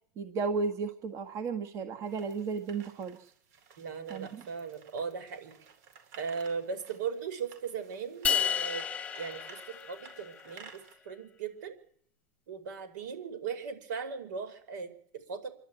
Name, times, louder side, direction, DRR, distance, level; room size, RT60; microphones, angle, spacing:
voice 1, 0.2-3.2 4.1-4.4, right 4 dB, 30° right, 8 dB, 1.5 m, -34 dB
sound 1, 2.1-10.9, right 6 dB, 55° right, 5.0 m, -55 dB
voice 2, 3.8-5.6 6.2-8.8 9.1-11.7 12.5-15.5, right 6 dB, 75° right, 7 dB, 5.0 m, -38 dB
sound 2, 8.2-10.5, left 8 dB, 15° left, 1.2 m, -32 dB
27.0 x 12.0 x 9.1 m, 0.63 s
supercardioid pair, 145°, 10 cm